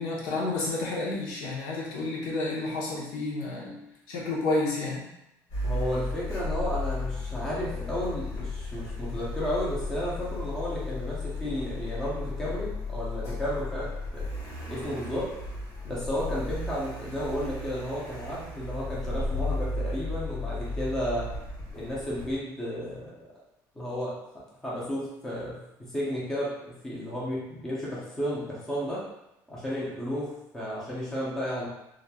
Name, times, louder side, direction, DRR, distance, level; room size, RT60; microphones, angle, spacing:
voice 1, 0.0-3.8 4.1-5.1, left 2 dB, 70° left, -4 dB, 0.8 m, -30 dB
Car, 5.5-22.4, left 2 dB, 45° left, 0.9 m, -34 dB
voice 2, 5.6-14.3 14.7-15.3 15.8-21.3 21.7-23.2 23.8-24.2 24.6-29.0 29.5-30.3 30.5-31.7, equal, 5° left, -7 dB, 0.6 m, -33 dB
3.0 x 2.4 x 2.2 m, 0.86 s
cardioid pair, 180°, 7 cm